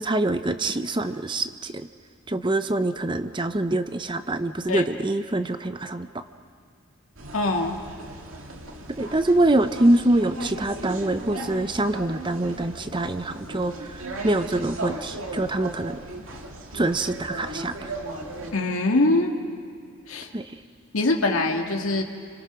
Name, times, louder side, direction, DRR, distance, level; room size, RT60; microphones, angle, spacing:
voice 1, 0.0-1.9 2.3-6.1 9.0-16.0 16.7-17.9 20.3-20.6, right 2 dB, 25° right, 10 dB, 0.7 m, -25 dB
sound 1, 7.2-18.5, right 2 dB, 75° right, 2.3 m, -37 dB
voice 2, 7.3-7.8 18.5-19.3 20.1-20.3 20.9-22.0, left 2 dB, 90° left, 2 dB, 2.1 m, -23 dB
29.5 x 26.0 x 6.2 m, 2.3 s
head